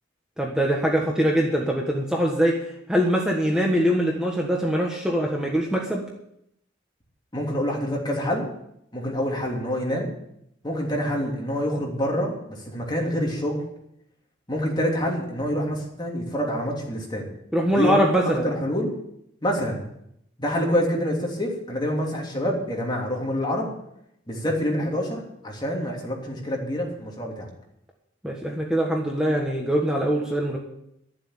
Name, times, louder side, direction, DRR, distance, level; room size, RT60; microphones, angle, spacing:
voice 1, 0.4-6.0 17.5-18.5 28.2-30.6, equal, 5° right, -1 dB, 1.4 m, -23 dB
voice 2, 7.3-8.5 8.9-10.1 10.6-13.6 14.5-17.3 17.7-17.9 18.4-18.9 19.4-19.8 20.4-23.7 24.3-27.5, equal, 20° left, -1 dB, 3.0 m, -26 dB
12.0 x 7.7 x 8.9 m, 0.77 s
head